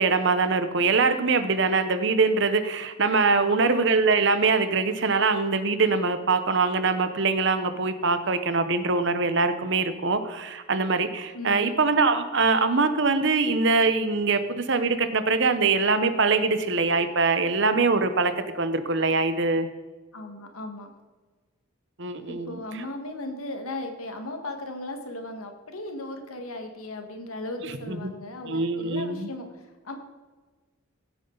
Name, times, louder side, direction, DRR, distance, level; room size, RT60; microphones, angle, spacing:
voice 1, 0.0-19.7 22.0-22.8 27.6-28.1 28.5-29.3, right 4 dB, 55° right, 10 dB, 0.9 m, -23 dB
voice 2, 3.3-3.6 11.3-11.8 20.1-20.9 22.3-29.9, left 1 dB, 85° left, 5 dB, 1.7 m, -37 dB
16.5 x 8.4 x 3.9 m, 1.3 s
head